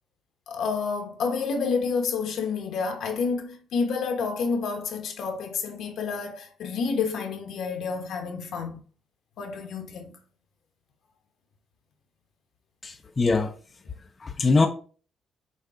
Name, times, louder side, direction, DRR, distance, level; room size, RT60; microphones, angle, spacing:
voice 1, 0.5-8.8 9.4-10.2, left 5 dB, 75° left, 1.0 m, -29 dB
voice 2, 12.8-13.5 14.2-14.7, left 3 dB, 30° left, 0.5 m, -22 dB
6.4 x 2.3 x 3.6 m
cardioid pair, 90°, 0 cm